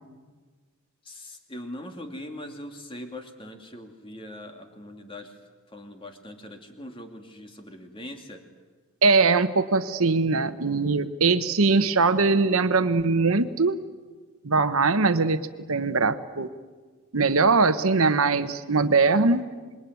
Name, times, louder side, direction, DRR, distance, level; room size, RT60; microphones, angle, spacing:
voice 1, 1.0-5.4 5.7-8.4, left 1 dB, 25° left, 4 dB, 2.5 m, -41 dB
voice 2, 9.0-13.8 14.4-15.4 15.7-16.5 17.1-19.4, right 4 dB, 75° right, 11 dB, 1.1 m, -21 dB
27.0 x 21.5 x 9.4 m, 1.4 s
head